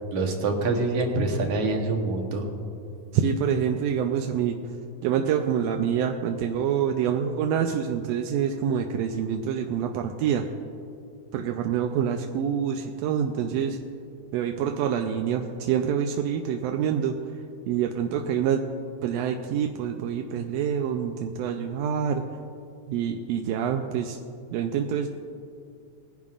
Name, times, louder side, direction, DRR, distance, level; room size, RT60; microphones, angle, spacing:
voice 1, 0.1-2.5, right 2 dB, 65° right, 3 dB, 2.1 m, -25 dB
voice 2, 3.1-4.6 5.0-10.5 11.3-13.8 14.3-17.2 17.7-18.6 19.0-22.2 22.9-24.2 24.5-25.1, right 8 dB, 80° right, 4 dB, 1.6 m, -26 dB
20.0 x 10.5 x 2.4 m, 2.5 s
omnidirectional pair, 3.3 m